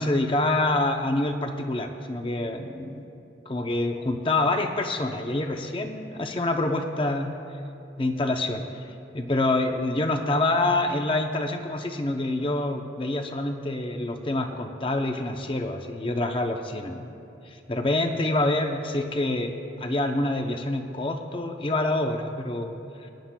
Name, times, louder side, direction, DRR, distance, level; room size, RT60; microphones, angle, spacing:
voice 1, 0.0-3.0 3.5-7.3 8.0-17.1 17.5-19.5 19.8-22.8 23.0-23.1, left 2 dB, 30° left, 5 dB, 0.6 m, -26 dB
20.5 x 9.7 x 2.2 m, 2.7 s
head